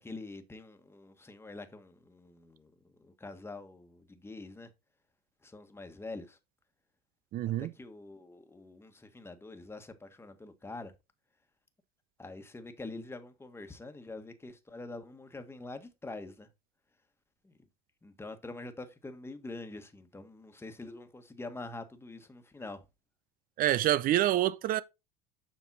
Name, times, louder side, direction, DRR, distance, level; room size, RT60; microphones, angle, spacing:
voice 1, 0.0-4.7 5.4-6.4 7.6-10.9 12.2-16.5 17.4-17.5 18.0-22.8, left 2 dB, 10° left, 1.5 m, -45 dB
voice 2, 7.3-7.7 23.6-24.8, right 13 dB, 50° right, 0.7 m, -27 dB
7.4 x 5.3 x 4.1 m
hypercardioid pair, 75°, 19 cm